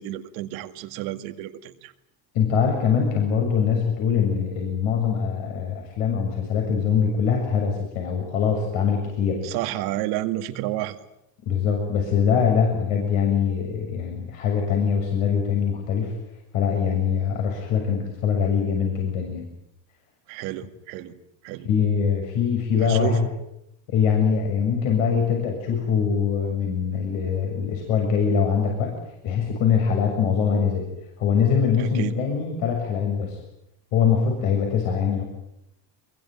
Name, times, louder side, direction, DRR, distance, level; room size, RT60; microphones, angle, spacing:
voice 1, 0.0-1.9 9.4-11.0 20.3-21.2 21.4-21.7 22.8-23.3 31.8-32.1, right 14 dB, 90° right, 8 dB, 2.2 m, -30 dB
voice 2, 2.3-9.4 11.5-16.1 16.5-19.4 21.7-23.3 23.9-28.9 29.2-30.9 31.2-33.4 33.9-35.2, left 7 dB, 80° left, 1 dB, 7.0 m, -23 dB
25.0 x 22.0 x 9.4 m, 0.83 s
cardioid pair, 110°, 48 cm